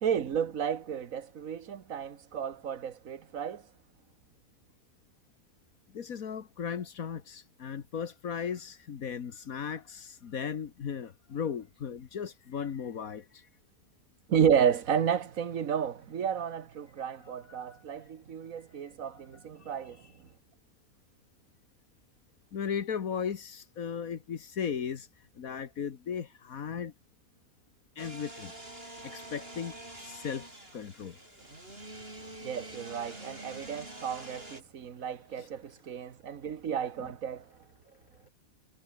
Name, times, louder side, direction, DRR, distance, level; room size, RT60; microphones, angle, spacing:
voice 1, 0.0-3.6 14.3-20.0 32.4-37.4, right 8 dB, 70° right, 1.7 m, -32 dB
voice 2, 5.9-13.5 17.2-17.6 19.1-19.2 22.5-25.1 25.4-26.9 28.0-28.5 29.0-29.7 30.0-30.5 30.7-31.2 35.4-35.5, left 7 dB, 75° left, 1.8 m, -36 dB
sound 1, 28.0-34.6, right 1 dB, 40° right, 6.7 m, -46 dB
omnidirectional pair, 1.5 m